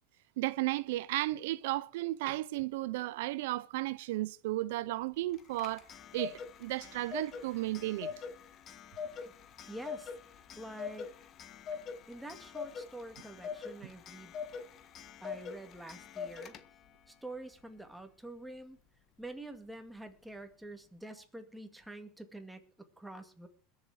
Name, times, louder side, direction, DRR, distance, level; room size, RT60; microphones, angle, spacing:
voice 1, 0.4-5.8 6.1-8.1, right 17 dB, 80° right, 0.6 m, -34 dB
Clock, 5.3-17.0, left 6 dB, 35° left, 1.5 m, -44 dB
voice 2, 9.7-10.1 10.6-11.1 12.1-14.3 15.2-16.6 17.1-18.8 19.2-23.5, right 1 dB, 5° right, 2.1 m, -47 dB
21.5 x 7.3 x 4.9 m
supercardioid pair, 135°, 0 cm